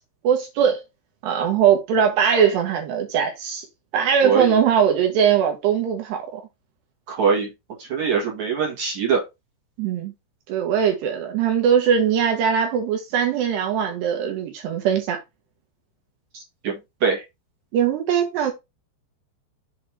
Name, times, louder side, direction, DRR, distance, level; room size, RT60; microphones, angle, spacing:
voice 1, 0.2-0.8 1.2-3.6 3.9-6.4 9.8-10.1 10.5-15.2 17.7-18.5, right 8 dB, 70° right, 2.9 m, -20 dB
voice 2, 4.2-4.6 7.1-7.5 7.8-9.2 16.6-16.7 17.0-17.2, right 6 dB, 50° right, 2.6 m, -22 dB
7.6 x 4.1 x 4.7 m
omnidirectional pair, 5.6 m